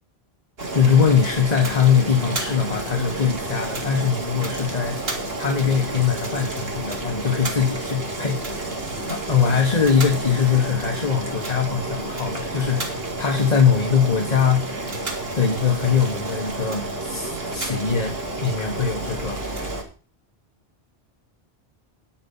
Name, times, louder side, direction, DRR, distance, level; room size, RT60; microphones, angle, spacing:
Boiling, 0.6-19.8, right 2 dB, 70° right, 2.4 m, -30 dB
voice 1, 0.7-5.0 5.4-8.7 9.1-14.7 15.3-19.4, left 6 dB, 40° left, 4 dB, 1.3 m, -22 dB
10.5 x 5.2 x 7.1 m, 0.37 s
omnidirectional pair, 1.1 m